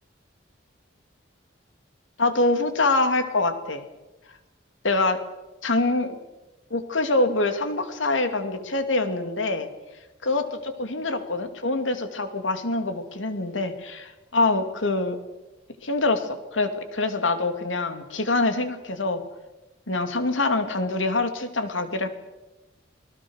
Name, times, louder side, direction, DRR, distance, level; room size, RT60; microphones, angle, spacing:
voice 1, 2.2-3.8 4.8-5.2 5.6-6.2 6.7-9.7 10.2-15.2 15.8-19.2 19.9-22.1, left 2 dB, 85° left, 8 dB, 2.5 m, -25 dB
28.0 x 19.5 x 6.4 m, 1.0 s
head